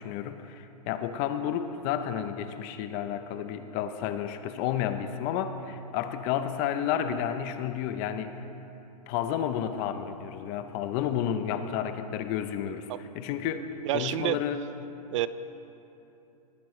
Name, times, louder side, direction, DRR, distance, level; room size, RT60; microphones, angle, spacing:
voice 1, 0.0-8.3 9.1-12.9 13.1-13.7 13.9-14.6, left 9 dB, 35° left, 10 dB, 0.7 m, -31 dB
voice 2, 13.9-14.4 15.1-15.3, right 13 dB, 50° right, 15 dB, 0.4 m, -28 dB
19.5 x 9.0 x 3.2 m, 2.9 s
hypercardioid pair, 130°, 20 cm